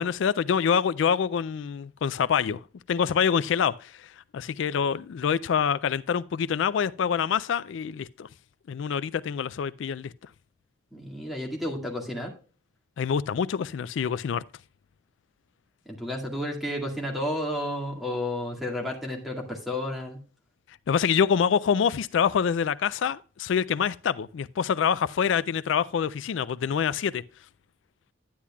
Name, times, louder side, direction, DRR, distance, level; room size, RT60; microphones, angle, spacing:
voice 1, 0.0-8.3 8.7-10.1 13.0-14.4 20.9-27.2, left 7 dB, 80° left, 0.3 m, -26 dB
voice 2, 10.9-12.3 15.9-20.2, left 1 dB, ahead, 2.0 m, -31 dB
10.0 x 9.9 x 2.3 m
head